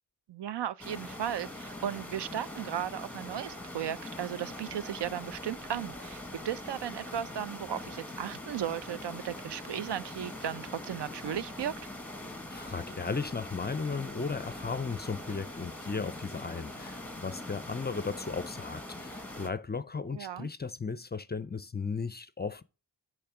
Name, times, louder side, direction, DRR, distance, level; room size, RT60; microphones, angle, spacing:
voice 1, 0.3-11.7 20.1-20.5, right 10 dB, 75° right, 0.5 m, -36 dB
sound 1, 0.8-19.5, left 1 dB, 5° left, 1.0 m, -43 dB
voice 2, 12.2-22.6, left 4 dB, 25° left, 0.4 m, -36 dB
8.5 x 3.3 x 5.9 m
wide cardioid pair, 70°, 42 cm